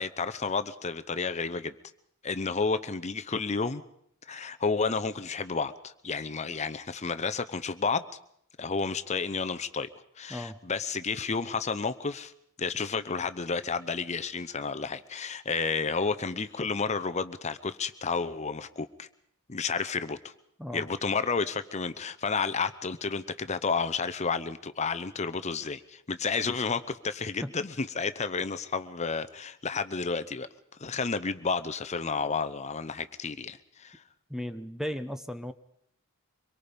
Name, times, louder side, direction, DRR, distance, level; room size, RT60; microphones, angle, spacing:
voice 1, 0.0-1.8 2.2-3.8 4.3-8.1 8.6-9.9 10.2-12.3 12.6-19.1 19.5-20.3 20.7-30.5 30.8-34.0, left 4 dB, 30° left, 11 dB, 0.8 m, -31 dB
voice 2, 34.3-35.5, equal, ahead, 10 dB, 0.8 m, -35 dB
25.0 x 23.0 x 5.2 m, 0.69 s
head